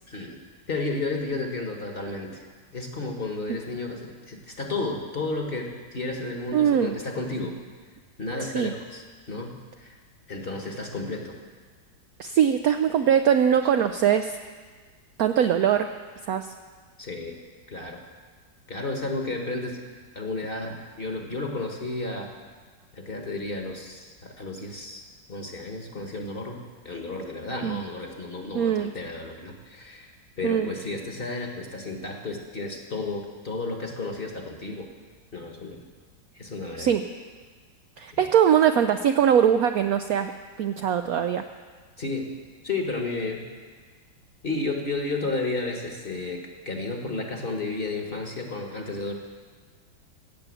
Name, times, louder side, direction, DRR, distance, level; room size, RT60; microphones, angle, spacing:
voice 1, 0.1-0.4 0.7-2.4 2.7-7.6 8.2-10.0 10.3-11.3 17.0-17.3 17.7-18.0 18.7-19.8 20.1-22.3 22.9-25.0 25.3-30.1 30.4-34.9 35.3-35.8 36.3-37.0 38.1-38.3 42.0-42.3 42.6-43.5 44.4-49.1, left 3 dB, 35° left, 2 dB, 1.3 m, -32 dB
voice 2, 6.5-7.0 8.4-8.7 12.2-14.4 15.2-15.9 16.3-16.5 27.6-27.8 28.5-28.9 30.4-30.7 36.8-37.0 38.0-40.3 40.6-41.4, right 9 dB, 70° right, 7 dB, 0.8 m, -22 dB
15.5 x 6.9 x 8.4 m, 1.5 s
omnidirectional pair, 2.0 m